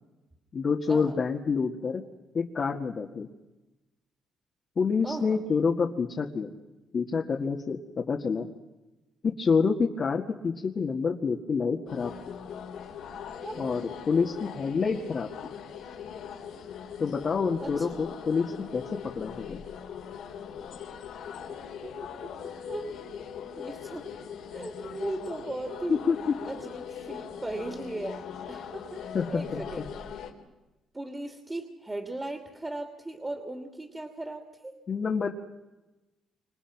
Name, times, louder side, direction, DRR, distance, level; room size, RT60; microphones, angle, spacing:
voice 1, 0.5-2.0 2.3-3.3 4.8-6.5 6.9-8.5 9.2-12.1 13.6-15.5 17.0-18.8 19.2-19.6 25.9-26.2 29.1-29.6 34.9-35.3, left 5 dB, 45° left, 0 dB, 2.1 m, -27 dB
voice 2, 5.0-5.5 13.4-13.8 17.6-18.1 21.8-21.9 22.2-22.3 22.7-22.9 23.6-24.1 24.5-26.0 26.4-28.2 28.5-29.9 30.9-34.8, right 2 dB, 15° right, 4 dB, 2.9 m, -37 dB
sound 1, 11.9-30.3, left 7 dB, 80° left, 3.7 m, -40 dB
28.5 x 27.0 x 6.1 m, 1.1 s
cardioid pair, 90°, 0 cm